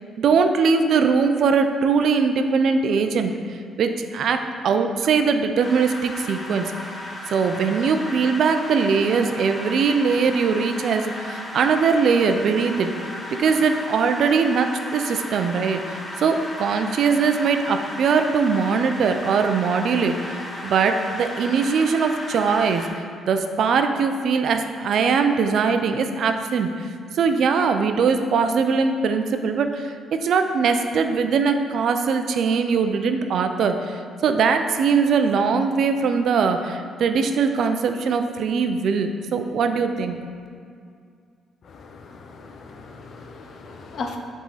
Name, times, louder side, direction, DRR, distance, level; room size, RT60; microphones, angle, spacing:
voice 1, 0.2-6.7 7.3-12.9 13.4-22.9 23.3-26.9 27.2-40.3, right 5 dB, 65° right, 7 dB, 0.4 m, -21 dB
sound 1, 5.6-22.9, left 1 dB, 25° left, 1.1 m, -35 dB
voice 2, 41.7-44.2, left 4 dB, 60° left, 4 dB, 0.6 m, -37 dB
7.2 x 3.6 x 4.0 m, 2.2 s
cardioid pair, 90°, 0 cm